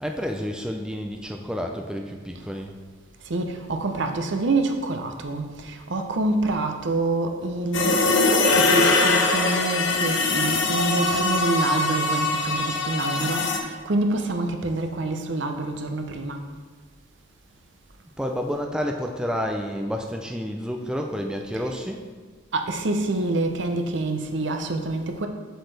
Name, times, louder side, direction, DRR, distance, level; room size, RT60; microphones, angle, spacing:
voice 1, 0.0-2.8 18.2-22.1, equal, 5° right, 2 dB, 0.4 m, -30 dB
voice 2, 3.3-16.4 22.5-25.3, right 2 dB, 65° right, 5 dB, 0.7 m, -26 dB
sound 1, 7.7-13.6, left 3 dB, 75° left, 0.8 m, -22 dB
7.8 x 6.3 x 3.3 m, 1.5 s
head